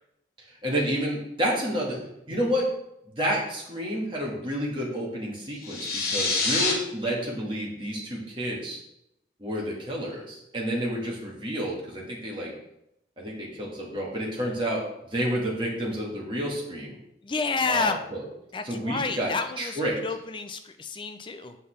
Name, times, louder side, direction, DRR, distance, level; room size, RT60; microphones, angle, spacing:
voice 1, 0.4-2.0 2.3-2.7 3.2-8.8 9.4-12.5 13.2-14.8 15.1-17.0 17.7-18.3 18.6-20.0, equal, 30° right, -3 dB, 1.8 m, -30 dB
sound 1, 5.6-6.7, left 3 dB, 55° left, 1.4 m, -26 dB
voice 2, 17.2-18.0 18.5-21.5, left 4 dB, 25° left, 8 dB, 0.5 m, -30 dB
7.5 x 5.5 x 3.3 m, 0.81 s
head